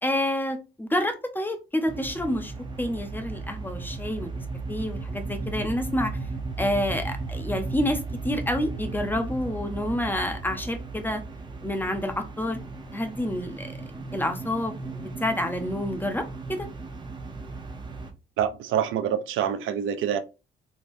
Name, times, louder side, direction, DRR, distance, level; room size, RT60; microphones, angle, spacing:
voice 1, 0.0-4.4 4.7-6.2 6.6-11.2 11.6-12.6 12.9-13.8 14.1-16.7, left 1 dB, 10° left, 0.6 m, -28 dB
sound 1, 1.9-18.1, right 3 dB, 25° right, 0.8 m, -36 dB
voice 2, 18.4-20.2, right 9 dB, 85° right, 0.5 m, -26 dB
3.4 x 2.8 x 2.6 m
cardioid pair, 90°, 20 cm